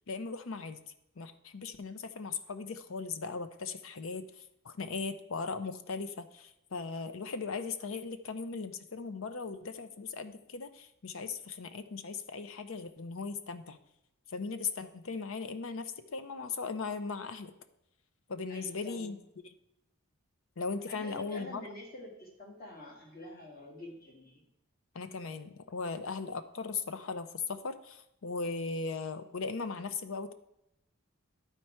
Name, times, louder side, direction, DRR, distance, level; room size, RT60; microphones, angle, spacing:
voice 1, 0.1-0.8 1.2-13.8 14.3-17.5 18.3-19.2 19.4-19.5 20.6-21.6 24.9-30.3, left 4 dB, 70° left, 10 dB, 0.6 m, -38 dB
voice 2, 18.5-19.2 20.9-24.5, left 1 dB, 45° left, -1 dB, 1.9 m, -47 dB
11.0 x 4.5 x 4.3 m, 0.82 s
head